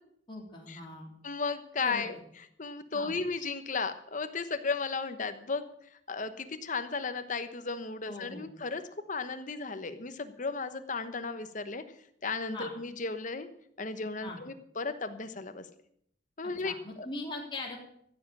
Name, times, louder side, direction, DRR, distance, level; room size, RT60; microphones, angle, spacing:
voice 1, 0.3-1.1 1.8-2.1 2.9-3.2 8.1-8.5 12.5-12.7 14.2-14.4 16.6-17.8, left 2 dB, 25° left, -1 dB, 3.4 m, -40 dB
voice 2, 1.2-2.2 2.6-5.6 6.1-8.8 9.1-11.8 12.2-13.5 13.8-15.6 16.4-17.1, left 4 dB, 45° left, 10 dB, 1.1 m, -35 dB
14.5 x 7.6 x 8.5 m, 0.70 s
head